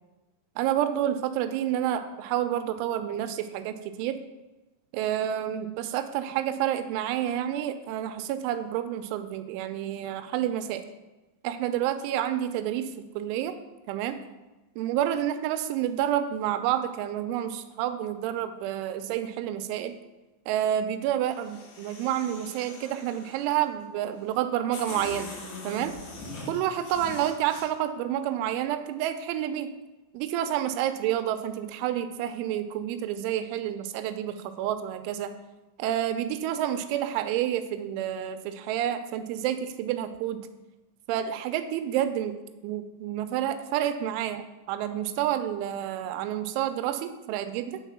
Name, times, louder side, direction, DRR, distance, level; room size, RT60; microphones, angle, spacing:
voice 1, 0.6-4.2 4.9-10.8 11.4-13.6 13.9-14.2 14.8-20.0 20.5-25.3 25.6-26.0 26.5-29.7 30.1-35.3 35.8-40.4 41.1-42.4 42.6-47.8, right 11 dB, 85° right, 9 dB, 2.9 m, -29 dB
sound 1, 21.3-23.6 24.3-24.4 24.7-27.6, left 3 dB, 70° left, 4.4 m, -42 dB
9.0 x 4.2 x 6.0 m, 1.1 s
omnidirectional pair, 5.7 m